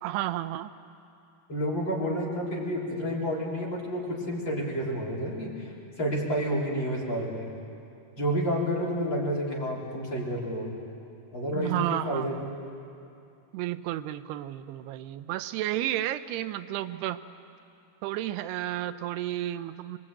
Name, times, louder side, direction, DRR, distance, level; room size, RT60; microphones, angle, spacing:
voice 1, 0.0-0.7 11.5-12.5 13.5-17.2 18.0-20.0, right 13 dB, 90° right, 12 dB, 2.8 m, -32 dB
voice 2, 1.5-5.7 6.0-7.5 8.2-10.7 11.3-12.3, equal, 30° left, -4 dB, 3.9 m, -30 dB
26.0 x 22.5 x 8.8 m, 2.7 s
omnidirectional pair, 4.6 m